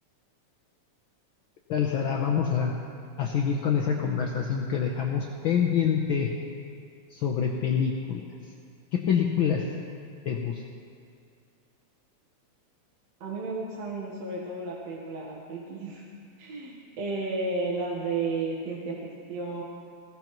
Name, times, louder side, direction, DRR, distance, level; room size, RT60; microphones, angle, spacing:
voice 1, 1.7-2.8 3.2-6.3 7.1-8.2 8.9-9.6 10.3-10.6, left 7 dB, 85° left, 1 dB, 1.1 m, -26 dB
voice 2, 13.2-16.1 16.4-19.6, right 3 dB, 65° right, -3 dB, 2.4 m, -33 dB
19.5 x 16.5 x 3.1 m, 2.3 s
omnidirectional pair, 3.3 m